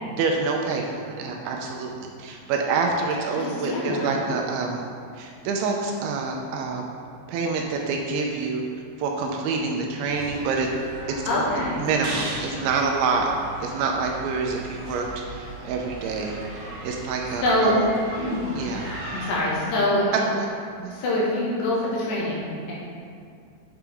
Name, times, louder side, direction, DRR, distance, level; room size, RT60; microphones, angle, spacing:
voice 1, 0.1-4.8 5.2-6.9 7.3-8.6 9.0-10.7 11.8-13.3 13.6-17.7 18.5-19.2 20.4-20.5 20.8-20.9, right 4 dB, 80° right, 1 dB, 2.8 m, -27 dB
voice 2, 3.2-4.2 11.3-11.8 17.4-17.8 18.1-18.5 19.1-20.3 20.9-22.7, left 1 dB, 70° left, -6 dB, 3.5 m, -25 dB
sound 1, 10.0-19.4, right 2 dB, 60° right, 2.1 m, -38 dB
8.7 x 7.0 x 3.4 m, 2.2 s
omnidirectional pair, 5.6 m